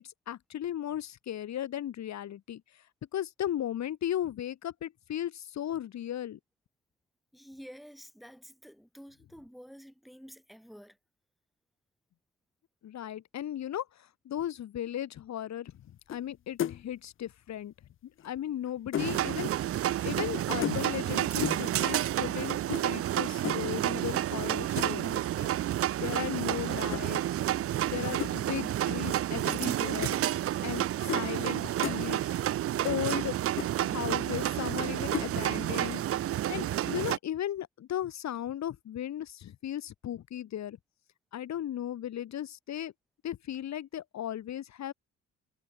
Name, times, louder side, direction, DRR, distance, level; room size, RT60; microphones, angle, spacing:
voice 1, 0.0-2.8 3.1-6.4 12.8-15.7 16.1-17.7 18.2-19.8 20.0-25.5 26.0-27.5 27.9-30.3 30.6-32.3 32.8-33.4 33.8-36.0 36.4-40.8 41.3-42.9 43.2-44.9, left 11 dB, 65° left, 1.8 m, -36 dB
voice 2, 7.3-11.0, equal, ahead, 3.7 m, -50 dB
sound 1, 16.1-16.3 16.6-16.9 18.2-19.2 20.6-21.1 21.4-21.7 22.7-22.9 23.4-23.7 24.8-25.1 26.9-27.0 28.2-28.4 29.5-29.6 30.0-30.1 31.1-31.2 31.6-32.0 32.9-33.0 33.3-33.4 33.6-33.7 35.1-35.3, left 10 dB, 45° left, 0.6 m, -34 dB
sound 2, 19.0-37.2, right 12 dB, 50° right, 0.5 m, -30 dB
cardioid pair, 90°, 30 cm